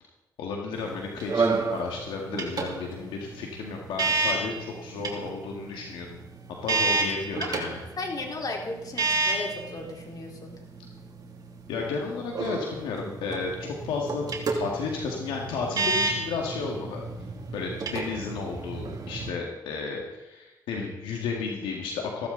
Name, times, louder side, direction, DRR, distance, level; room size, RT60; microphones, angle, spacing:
voice 1, 0.4-6.2 6.6-7.7 11.7-14.2 14.5-17.0 17.5-22.3, left 4 dB, 90° left, 0 dB, 2.1 m, -33 dB
sound 1, 0.7-19.3, right 3 dB, 50° right, 3.0 m, -31 dB
voice 2, 8.0-10.6, left 2 dB, 50° left, 0 dB, 4.3 m, -35 dB
16.0 x 15.0 x 4.1 m, 1.0 s
cardioid pair, 65°, 8 cm